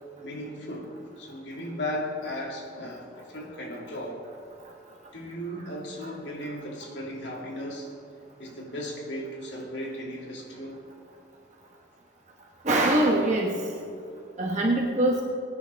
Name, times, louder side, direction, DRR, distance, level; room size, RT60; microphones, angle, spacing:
voice 1, 0.2-0.9 1.2-4.2 5.1-7.9 8.4-10.8, equal, 75° left, -2 dB, 2.6 m, -36 dB
voice 2, 12.6-13.6 14.4-15.2, right 1 dB, 40° right, -2 dB, 1.3 m, -23 dB
22.0 x 9.5 x 3.5 m, 2.5 s
head